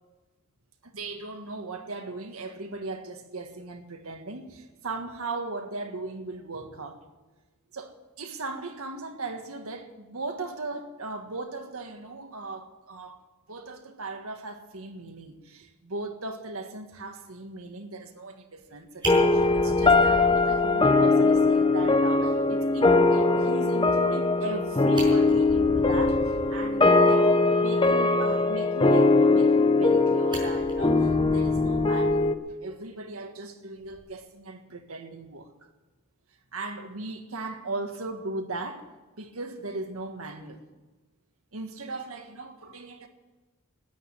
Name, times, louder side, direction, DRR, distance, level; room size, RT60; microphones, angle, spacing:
voice 1, 0.8-7.0 7.7-13.2 13.5-27.3 27.5-32.4 32.6-35.5 36.5-38.9 39.2-40.6 41.5-43.1, right 2 dB, 85° right, 1.7 m, -38 dB
Fire, 18.6-18.7 19.0-20.9 21.3-21.4 21.8-21.9 22.2-22.3 24.5-24.6 24.8-26.6 29.4-29.9 30.3-32.5 33.8-34.0, right 1 dB, 20° right, 6.0 m, -37 dB
sound 1, 19.1-32.4, left 3 dB, 25° left, 0.8 m, -21 dB
13.5 x 9.7 x 10.0 m
head